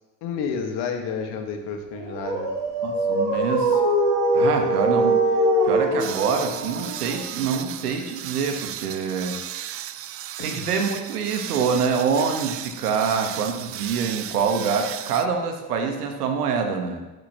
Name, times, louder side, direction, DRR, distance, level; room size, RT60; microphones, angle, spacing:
voice 1, 0.2-2.5 10.4-10.7, left 6 dB, 55° left, 5 dB, 1.6 m, -30 dB
Dog, 1.9-7.6, right 1 dB, 60° right, 2.0 m, -27 dB
voice 2, 2.8-3.8 4.3-5.2 5.6-9.4 10.4-17.0, right 5 dB, 80° right, 5 dB, 1.3 m, -25 dB
sound 1, 2.9-6.6, right 1 dB, 5° right, 1.2 m, -23 dB
sound 2, 6.0-15.3, right 12 dB, 35° right, 0.4 m, -35 dB
12.0 x 8.0 x 3.0 m, 1.1 s
hypercardioid pair, 65°, 45 cm